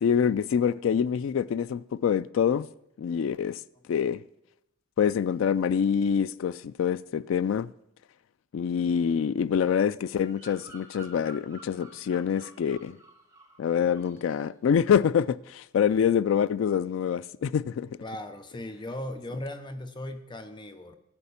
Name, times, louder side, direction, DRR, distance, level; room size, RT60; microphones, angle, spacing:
voice 1, 0.0-2.7 3.0-3.6 3.9-4.2 5.0-7.7 8.5-13.0 13.6-17.9, left 7 dB, 70° left, 0.3 m, -26 dB
Bird vocalization bird call bird song, 10.1-13.6 13.9-14.3, right 2 dB, 15° right, 2.2 m, -51 dB
voice 2, 18.0-21.0, left 1 dB, 25° left, 0.6 m, -37 dB
14.5 x 5.8 x 7.0 m
head